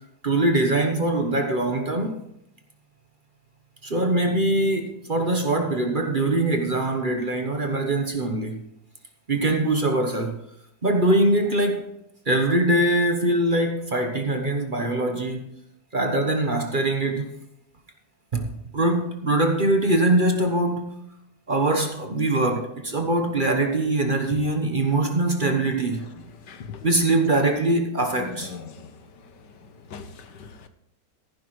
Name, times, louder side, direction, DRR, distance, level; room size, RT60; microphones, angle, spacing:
voice 1, 0.2-2.2 3.8-8.6 9.3-10.4 10.8-11.9 12.3-15.4 15.9-17.3 18.3-18.5 18.7-21.0 21.5-26.0 26.8-28.5, right 2 dB, 35° right, 1.1 m, -22 dB
voice 2, 26.2-26.9 28.2-29.0 29.9-30.7, left 5 dB, 80° left, 1.7 m, -40 dB
14.5 x 11.5 x 3.2 m
omnidirectional pair, 1.8 m